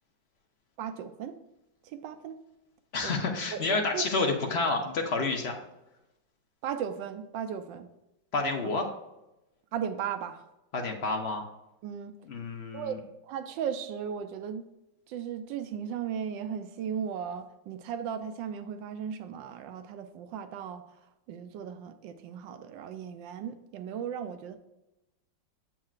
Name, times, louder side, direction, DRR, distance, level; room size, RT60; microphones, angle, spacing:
voice 1, 0.8-1.4 1.8-2.4 3.0-4.1 6.6-7.9 9.7-10.4 11.8-12.1 12.7-14.6 15.1-20.8 21.3-24.6, right 8 dB, 80° right, 9 dB, 1.3 m, -36 dB
voice 2, 2.9-5.5 8.3-8.9 10.7-11.5 12.3-13.0, left 3 dB, 55° left, 2 dB, 0.7 m, -29 dB
8.5 x 7.4 x 2.4 m, 0.95 s
omnidirectional pair, 2.0 m